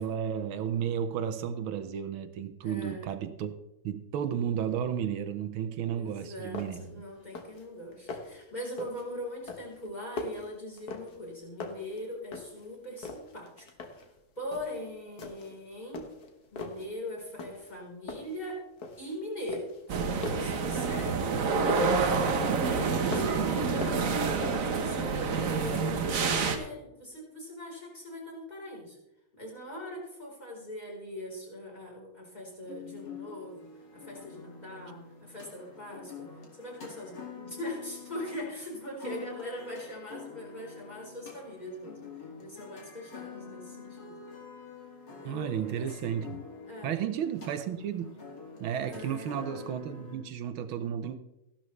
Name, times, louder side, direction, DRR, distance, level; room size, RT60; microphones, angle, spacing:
voice 1, 0.0-3.5 3.8-6.8 45.2-46.4 46.8-48.1 48.6-51.2, right 8 dB, 80° right, 9 dB, 1.6 m, -33 dB
voice 2, 2.6-3.0 5.9-13.7 13.9-16.0 16.5-18.6 19.0-20.0 20.3-24.3 24.6-25.8 26.1-29.0 29.3-44.3 45.2-46.1 46.7-47.0 48.9-49.3, left 1 dB, 20° left, -4 dB, 4.2 m, -41 dB
sound 1, 6.1-6.2 6.5-6.9 7.2-7.6 7.9-8.4 8.8-9.1 9.5-11.3 11.6-12.7 13.0-14.1 14.5-14.8 15.2-15.6 15.9-16.9 17.4-17.8 18.1-19.2 19.5-22.0 22.4-23.5 23.8-24.8, left 3 dB, 50° left, 1.7 m, -41 dB
sound 2, 19.9-26.6, right 4 dB, 50° right, 1.2 m, -28 dB
sound 3, 32.6-50.2, left 5 dB, 80° left, 3.1 m, -47 dB
15.0 x 11.5 x 3.2 m, 0.92 s
omnidirectional pair, 2.2 m